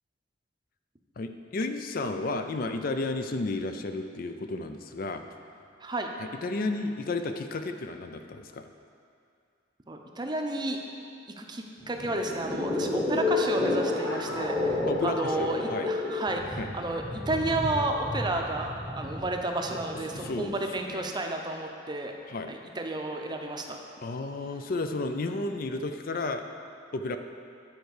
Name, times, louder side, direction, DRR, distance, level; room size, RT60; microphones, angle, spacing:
voice 1, 1.2-5.2 6.2-8.6 14.9-15.9 16.6-16.7 19.7-19.8 20.1-21.1 22.3-22.5 24.0-26.4 26.9-27.2, left 2 dB, 50° left, 7 dB, 0.4 m, -32 dB
voice 2, 9.9-10.8 11.4-22.1 22.5-23.8, right 2 dB, 25° right, 3 dB, 0.6 m, -32 dB
sound 1, 11.8-20.6, left 2 dB, 15° left, 1.1 m, -31 dB
10.5 x 4.5 x 6.6 m, 2.4 s
head